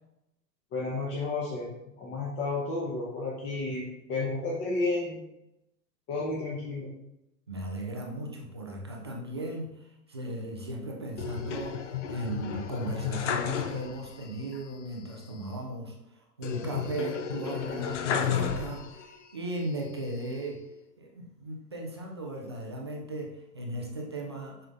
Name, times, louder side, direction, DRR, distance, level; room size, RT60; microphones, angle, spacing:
voice 1, 0.7-1.7 2.0-5.2 6.1-6.9, left 3 dB, 25° left, -5 dB, 1.1 m, -32 dB
voice 2, 7.5-20.6 21.0-24.7, right 1 dB, 20° right, -1 dB, 0.3 m, -37 dB
sound 1, 11.2-14.2 14.5-14.6 16.4-19.2 19.7-20.5, left 7 dB, 45° left, 0.6 m, -33 dB
7.4 x 5.4 x 2.5 m, 0.87 s
figure-of-eight pair, 105°, 50 cm